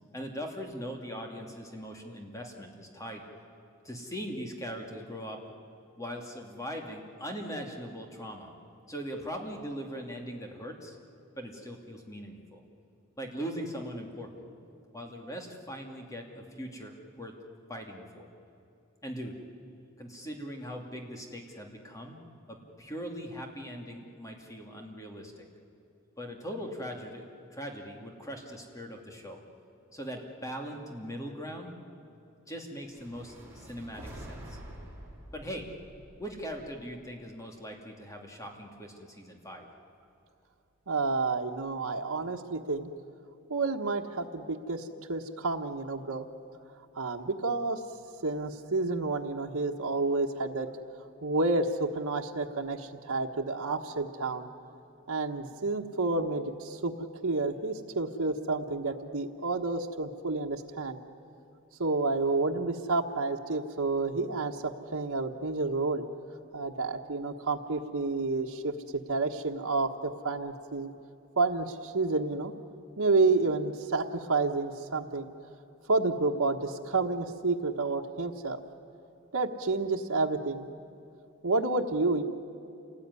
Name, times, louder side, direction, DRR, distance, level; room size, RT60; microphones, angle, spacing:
voice 1, 0.1-3.3 3.8-5.4 6.0-8.5 8.9-11.0 11.4-12.6 13.2-14.4 14.9-17.3 17.7-18.3 19.0-19.4 20.0-22.2 22.5-25.5 26.2-27.2 27.5-29.4 29.9-31.7 32.5-34.6 35.3-35.7 36.2-39.7, equal, 15° left, 2 dB, 2.5 m, -40 dB
sound 1, 32.9-37.1, right 1 dB, 10° right, 4.8 m, -47 dB
voice 2, 40.9-42.9 43.5-46.3 46.9-47.8 48.2-50.7 51.2-54.5 55.1-56.9 57.2-61.0 61.8-66.0 66.5-70.9 71.4-72.5 73.0-75.3 75.9-78.6 79.3-80.7 81.4-82.2, right 3 dB, 90° right, 2 dB, 1.3 m, -30 dB
27.5 x 19.0 x 9.7 m, 2.7 s
head